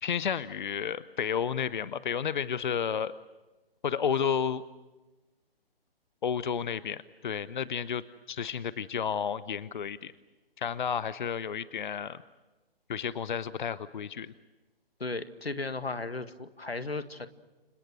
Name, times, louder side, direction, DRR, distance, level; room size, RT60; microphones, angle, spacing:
voice 1, 0.0-3.1 3.8-4.6 6.2-8.0 8.3-10.1 10.6-12.2 12.9-14.3, left 7 dB, 50° left, 17 dB, 0.8 m, -31 dB
voice 2, 15.0-17.3, left 3 dB, 80° left, 11 dB, 1.8 m, -35 dB
30.0 x 26.0 x 6.4 m, 1.2 s
figure-of-eight pair, 130°, 30 cm